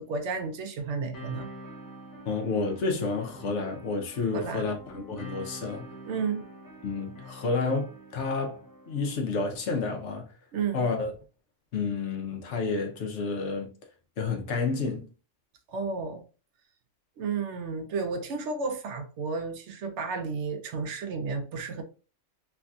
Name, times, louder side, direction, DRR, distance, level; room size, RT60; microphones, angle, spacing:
voice 1, 0.0-1.5 4.3-4.7 6.1-6.4 10.5-10.9 15.7-16.2 17.2-21.8, right 4 dB, 70° right, 0.9 m, -32 dB
sound 1, 1.1-9.2, equal, 20° left, 0.6 m, -46 dB
voice 2, 2.3-5.9 6.8-10.3 10.7-11.1 11.7-13.7 14.2-15.1, left 4 dB, 70° left, 1.0 m, -30 dB
3.3 x 2.5 x 2.3 m
omnidirectional pair, 1.3 m